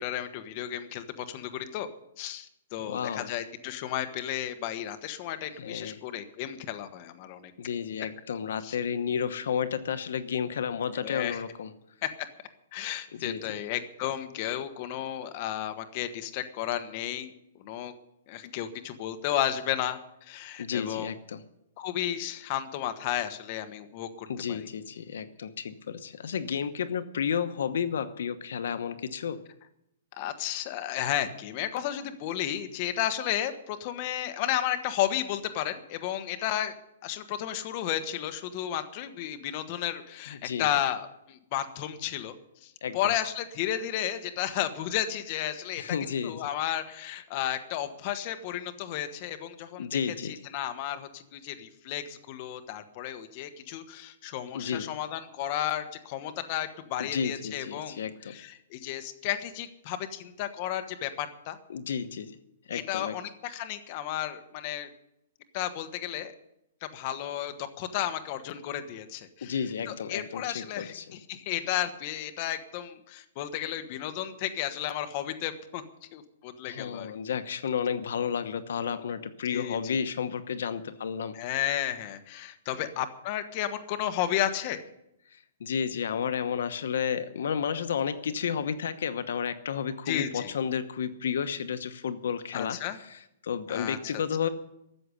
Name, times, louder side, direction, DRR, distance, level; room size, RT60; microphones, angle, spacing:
voice 1, 0.0-1.9 2.2-7.5 8.6-8.7 10.9-11.4 12.0-12.1 12.7-17.9 18.3-21.1 21.8-24.7 30.1-36.7 37.0-42.3 42.6-45.8 46.2-61.6 62.7-64.9 65.5-66.3 66.8-75.8 76.1-77.1 79.5-80.0 81.3-84.8 90.1-90.5 92.5-93.0 93.7-94.2, left 11 dB, 35° left, 9 dB, 1.2 m, -33 dB
voice 2, 2.8-3.4 5.6-6.0 7.6-11.7 13.1-13.6 20.6-21.4 24.3-29.4 40.3-40.7 42.8-43.1 45.8-46.5 49.8-50.3 54.5-54.9 57.0-58.3 61.7-62.4 62.7-63.2 69.4-71.2 76.6-81.4 85.3-94.5, left 7 dB, 70° left, 11 dB, 1.0 m, -32 dB
13.5 x 7.8 x 9.9 m, 0.82 s
hypercardioid pair, 160°, 0 cm